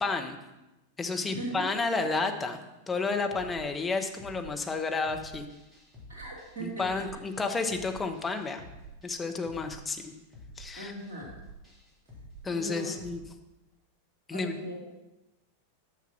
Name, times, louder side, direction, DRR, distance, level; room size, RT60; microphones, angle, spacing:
voice 1, 0.0-0.4 1.0-2.6 2.9-5.5 6.6-8.6 9.0-10.1 10.6-10.9 12.4-13.2 14.3-14.6, left 4 dB, 15° left, 5 dB, 0.9 m, -31 dB
voice 2, 1.2-1.7 6.1-7.0 10.8-11.3 12.5-12.9 14.3-14.8, right 2 dB, 60° right, -3 dB, 2.6 m, -39 dB
sound 1, 3.3-13.2, right 1 dB, 10° right, 3.2 m, -50 dB
6.6 x 6.4 x 5.9 m, 0.99 s
figure-of-eight pair, 90°, 0 cm